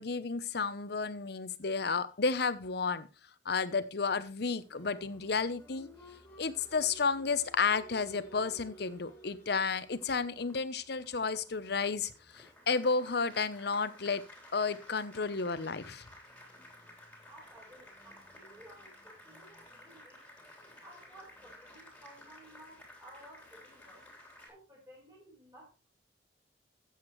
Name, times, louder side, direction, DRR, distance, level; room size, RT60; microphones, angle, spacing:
voice 1, 0.0-3.1 3.4-5.9 6.4-14.2 14.5-16.0, left 4 dB, 65° left, 14 dB, 0.9 m, -32 dB
Applause, 4.5-24.5, equal, 10° left, 3.5 m, -55 dB
voice 2, 17.3-20.3 20.8-24.0 24.5-25.9, right 1 dB, 20° right, -5 dB, 5.2 m, -56 dB
13.5 x 8.3 x 3.2 m, 0.29 s
head